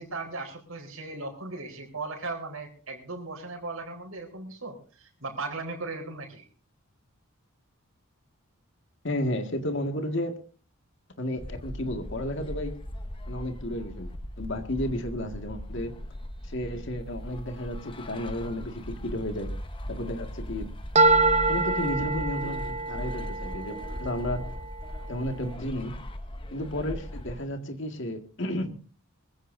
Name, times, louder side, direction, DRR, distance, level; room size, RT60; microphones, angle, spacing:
voice 1, 0.0-6.4, right 3 dB, 75° right, 0 dB, 4.4 m, -37 dB
voice 2, 9.0-10.4 11.2-12.7 13.3-14.1 14.4-15.9 16.5-19.5 19.9-20.7 21.5-22.6 22.9-24.4 25.1-25.9 26.5-28.8, left 1 dB, 60° left, 6 dB, 2.0 m, -32 dB
sound 1, 11.4-27.5, equal, 25° left, 1.2 m, -38 dB
sound 2, 21.0-25.0, right 3 dB, 30° right, 0.8 m, -26 dB
23.0 x 15.5 x 2.7 m, 0.40 s
head